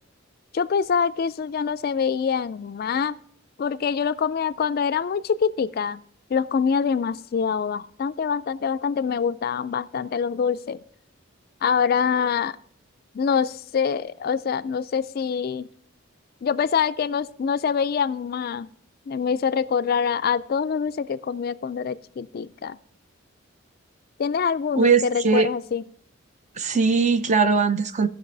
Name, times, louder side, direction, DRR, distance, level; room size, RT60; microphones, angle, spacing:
voice 1, 0.5-3.2 3.6-6.0 6.3-10.8 11.6-12.6 13.1-15.7 16.4-18.7 19.1-22.8 24.2-25.8, left 6 dB, 45° left, 0.3 m, -25 dB
voice 2, 24.8-25.5 26.6-28.1, right 5 dB, 35° right, 0.5 m, -20 dB
17.0 x 6.1 x 3.3 m
head